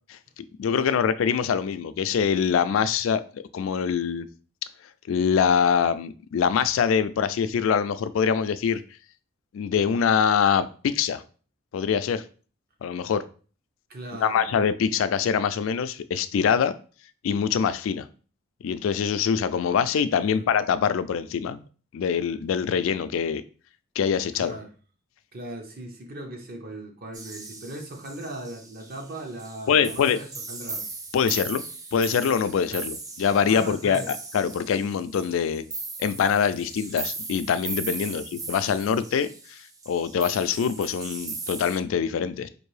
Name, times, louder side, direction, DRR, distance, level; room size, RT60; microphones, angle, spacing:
voice 1, 0.4-4.3 5.1-8.8 9.5-11.2 11.7-12.2 12.8-13.2 14.1-16.7 17.2-18.1 18.6-21.6 21.9-23.4 24.0-24.6 29.7-30.2 31.1-31.6 31.9-35.6 36.0-39.6 39.9-42.5, left 7 dB, 75° left, 13 dB, 0.3 m, -24 dB
voice 2, 13.9-14.4 20.2-20.4 24.4-24.7 25.3-30.8 32.7-32.9 33.5-34.1 36.5-36.6 38.0-38.2, right 1 dB, 50° right, 3 dB, 0.8 m, -38 dB
sound 1, 27.1-41.8, right 3 dB, 20° right, 0.4 m, -38 dB
4.4 x 2.6 x 3.2 m, 0.39 s
head